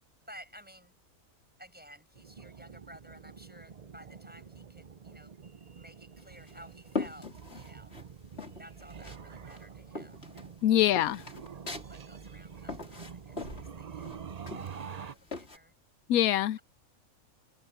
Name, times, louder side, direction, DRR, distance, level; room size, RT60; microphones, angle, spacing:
voice 1, 0.3-0.9 1.6-5.3 5.7-7.9 8.6-10.2 10.9-11.2 11.8-14.2 14.6-15.7, equal, 5° right, 6.7 m, -54 dB
sound 1, 2.2-15.2, right 6 dB, 40° right, 0.6 m, -47 dB
sound 2, 6.2-8.1 8.4-9.2 9.5-15.6, left 3 dB, 45° left, 3.8 m, -40 dB
voice 2, 10.6-11.2 16.1-16.6, left 12 dB, 80° left, 1.1 m, -24 dB
open air
omnidirectional pair, 1.5 m